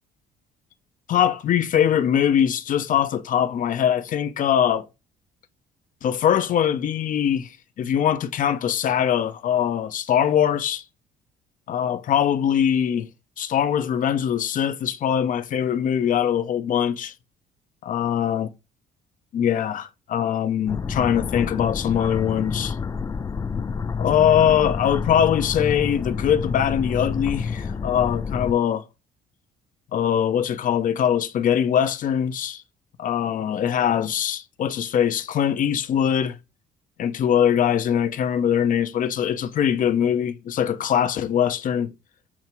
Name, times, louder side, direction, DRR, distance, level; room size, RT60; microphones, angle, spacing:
voice 1, 1.1-4.9 6.0-7.5 7.8-10.8 11.7-13.1 13.4-17.1 17.8-18.5 19.3-22.8 24.0-28.8 29.9-32.6 33.0-36.4 37.0-41.9, left 9 dB, 50° left, 0.8 m, -22 dB
sound 1, 20.7-28.5, left 5 dB, 20° left, 0.3 m, -28 dB
7.2 x 2.9 x 4.6 m
cardioid pair, 110°, 17 cm